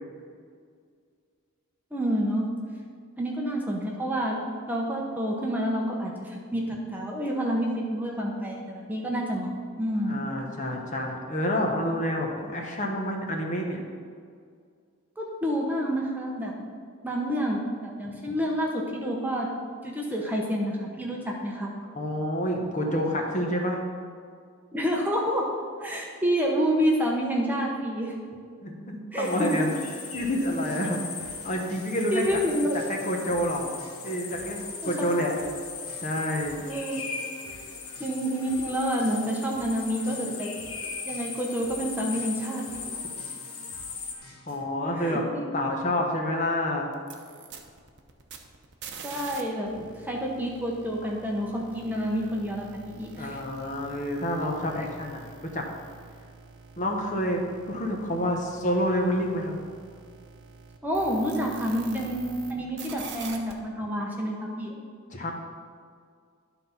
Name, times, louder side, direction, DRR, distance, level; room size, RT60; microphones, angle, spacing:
voice 1, 1.9-2.5 3.2-4.4 4.7-9.5 9.8-10.2 15.2-16.7 17.0-19.5 19.8-21.7 24.7-28.2 29.1-29.7 32.1-32.8 34.8-35.3 36.6-37.0 37.7-40.5 41.1-42.7 45.0-45.5 49.0-49.7 50.0-53.4 60.8-64.7, equal, 10° right, -1 dB, 0.8 m, -28 dB
voice 2, 10.0-13.8 18.3-18.4 21.9-23.8 28.6-29.7 30.1-31.0 31.4-32.2 32.9-33.6 34.0-35.3 36.0-36.6 44.5-45.2 45.5-46.9 49.8-49.9 53.2-55.6 56.8-59.6 65.1-65.3, equal, 35° left, 1 dB, 1.1 m, -28 dB
sound 1, 29.2-44.2, left 5 dB, 70° left, 1.3 m, -39 dB
sound 2, 29.7-44.6, left 1 dB, 90° left, 2.4 m, -50 dB
sound 3, 46.9-49.4 49.7-62.5 62.8-63.5, right 5 dB, 50° right, 0.8 m, -46 dB
12.0 x 4.0 x 5.7 m, 2.1 s
head